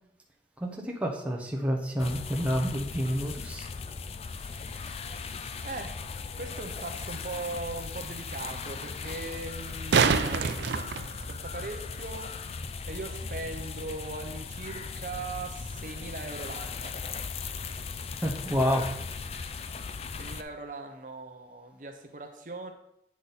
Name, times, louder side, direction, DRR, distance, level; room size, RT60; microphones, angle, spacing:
voice 1, 0.6-3.7 18.2-18.9, equal, 5° right, -1 dB, 0.9 m, -29 dB
sound 1, 2.0-20.4, left 5 dB, 35° left, 0.4 m, -38 dB
voice 2, 4.3-5.2 5.6-10.9 11.3-12.3 12.9-16.9 20.2-22.7, right 3 dB, 45° right, 4 dB, 0.8 m, -40 dB
sound 2, 6.7-6.8 9.5-11.7 14.6-14.7, right 5 dB, 85° right, 0.5 m, -26 dB
8.4 x 5.9 x 4.0 m, 0.77 s
head